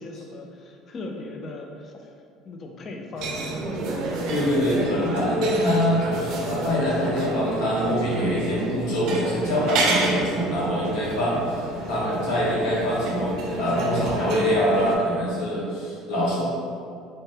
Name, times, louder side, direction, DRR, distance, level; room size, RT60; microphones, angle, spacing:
voice 1, 0.0-2.1 2.5-3.5, left 2 dB, 35° left, 2 dB, 0.3 m, -38 dB
sound 1, 3.2-15.0, right 2 dB, 60° right, 0.4 m, -29 dB
voice 2, 4.3-16.4, equal, 75° left, -6 dB, 0.9 m, -24 dB
2.7 x 2.1 x 3.2 m, 2.3 s
cardioid pair, 120°, 0 cm